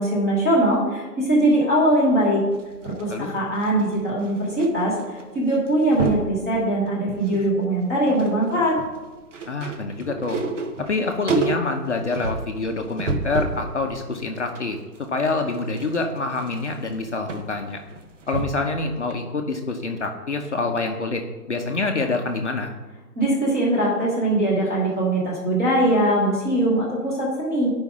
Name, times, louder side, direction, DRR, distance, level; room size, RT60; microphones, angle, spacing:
voice 1, 0.0-2.4 2.8-8.8 23.1-27.7, right 1 dB, 10° right, -7 dB, 1.2 m, -21 dB
sound 1, 2.5-4.7 5.0-5.2 5.5-6.3 6.9-7.5 7.8-13.7 14.1-18.8 19.1-19.2, right 3 dB, 50° right, 0.9 m, -30 dB
voice 2, 9.5-10.4 10.9-14.8 15.1-17.8 18.3-21.2 21.5-22.7, left 3 dB, 45° left, 3 dB, 0.7 m, -26 dB
11.5 x 5.2 x 3.6 m, 1.2 s
hypercardioid pair, 175°, 49 cm